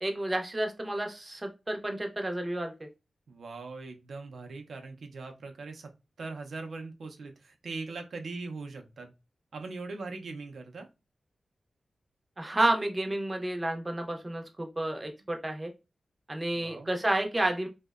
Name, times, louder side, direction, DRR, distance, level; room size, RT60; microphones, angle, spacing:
voice 1, 0.0-2.9 12.4-15.7 16.3-17.7, right 1 dB, 20° right, 3 dB, 0.5 m, -30 dB
voice 2, 3.3-5.9 6.2-9.1 9.5-10.9 16.5-17.0, right 3 dB, 85° right, 4 dB, 0.4 m, -41 dB
2.8 x 2.0 x 2.3 m, 0.26 s
wide cardioid pair, 115°, 0 cm